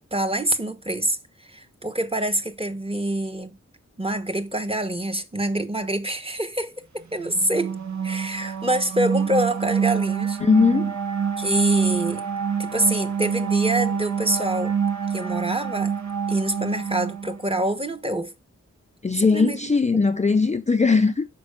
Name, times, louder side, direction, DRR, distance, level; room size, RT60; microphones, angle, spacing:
voice 1, 0.1-3.5 4.0-7.8 8.0-10.4 11.4-12.3 12.6-14.8 15.1-15.9 16.3-18.3 19.2-19.7, right 1 dB, 20° right, 1.0 m, -26 dB
sound 1, 7.2-17.7, right 7 dB, 70° right, 0.9 m, -26 dB
voice 2, 10.4-11.0 19.0-21.3, left 4 dB, 25° left, 0.4 m, -19 dB
6.0 x 4.6 x 6.4 m
cardioid pair, 50°, 30 cm